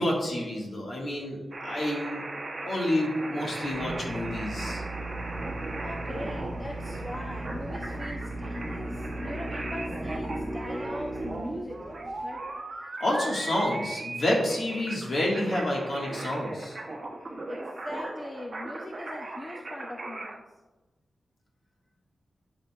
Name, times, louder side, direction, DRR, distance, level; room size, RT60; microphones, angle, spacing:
voice 1, 0.0-2.2 2.6-4.8 13.0-16.8, left 1 dB, 55° left, -2 dB, 1.6 m, -29 dB
sound 1, 1.5-20.4, right 2 dB, 40° right, 0.8 m, -38 dB
Drill, 3.6-12.2, right 1 dB, 15° right, 1.2 m, -36 dB
voice 2, 5.8-12.5 17.5-20.4, left 1 dB, 25° left, 1 dB, 0.5 m, -40 dB
10.5 x 5.2 x 2.3 m, 1.2 s
wide cardioid pair, 115°, 0 cm